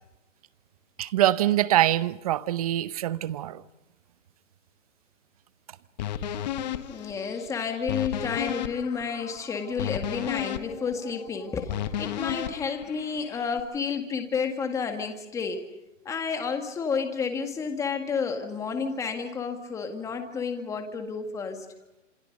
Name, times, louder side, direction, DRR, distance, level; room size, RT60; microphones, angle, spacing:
voice 1, 1.0-3.6, right 13 dB, 30° right, 0.8 m, -24 dB
sound 1, 6.0-13.6, left 10 dB, 35° left, 1.4 m, -34 dB
voice 2, 6.9-15.6 16.1-21.7, left 5 dB, 10° left, 1.8 m, -31 dB
27.5 x 26.5 x 5.3 m
hypercardioid pair, 155°, 38 cm